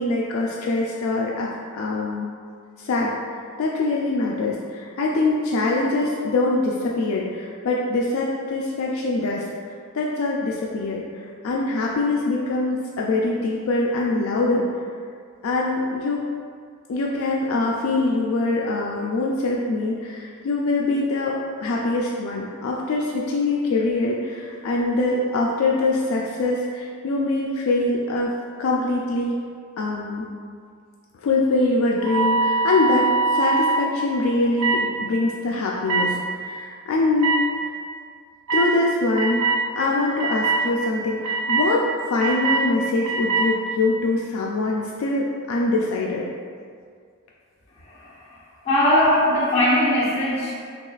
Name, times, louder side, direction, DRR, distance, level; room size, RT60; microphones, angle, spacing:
voice 1, 0.0-2.3 2.8-3.1 3.6-9.4 9.9-14.7 15.4-16.3 16.9-28.3 28.6-29.4 29.8-30.3 31.2-37.7 38.5-46.3, left 2 dB, 65° left, -2 dB, 0.3 m, -23 dB
Despertador sintetico revivir, 32.0-33.8 34.6-34.8 35.9-36.1 37.2-37.4 38.5-38.7 39.2-39.6 40.2-40.6 41.2-41.7 42.2-42.6 43.0-43.5, right 4 dB, 75° right, 0.5 m, -22 dB
voice 2, 47.8-50.5, left 1 dB, 25° left, -9 dB, 1.0 m, -21 dB
6.0 x 2.3 x 2.4 m, 2.1 s
head